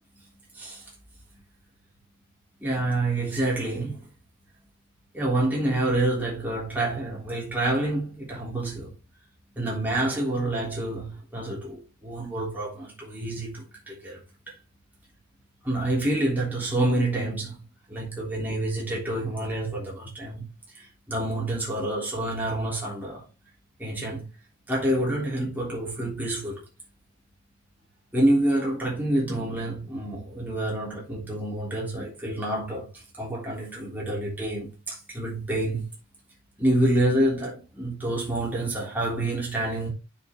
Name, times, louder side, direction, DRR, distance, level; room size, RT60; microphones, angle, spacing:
voice 1, 0.5-0.9 2.6-4.1 5.1-9.0 9.5-14.2 14.5-14.6 15.6-23.3 23.8-24.3 24.7-26.6 28.1-35.9 36.6-39.9, right 1 dB, 10° right, 3.3 m, -28 dB
9.1 x 6.2 x 3.0 m
head